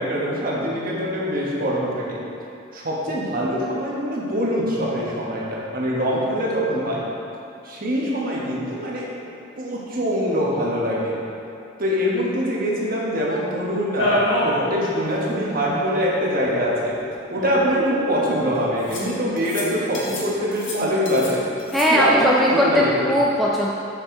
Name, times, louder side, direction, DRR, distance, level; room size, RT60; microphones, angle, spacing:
voice 1, 0.0-2.2 2.7-7.0 7.6-9.1 9.6-11.2 11.8-16.9 17.3-21.4 21.9-23.1, equal, 45° right, -4 dB, 1.2 m, -23 dB
sound 1, 14.0-14.6 15.0-15.1 15.3-15.4 16.5-16.6 17.3-17.9 18.9-19.1 19.4-19.6 19.9-20.3 20.5-21.3 21.6-21.9, left 1 dB, 70° left, 1.3 m, -26 dB
voice 2, 21.7-23.7, equal, ahead, -5 dB, 0.3 m, -19 dB
6.5 x 5.9 x 3.7 m, 2.7 s
head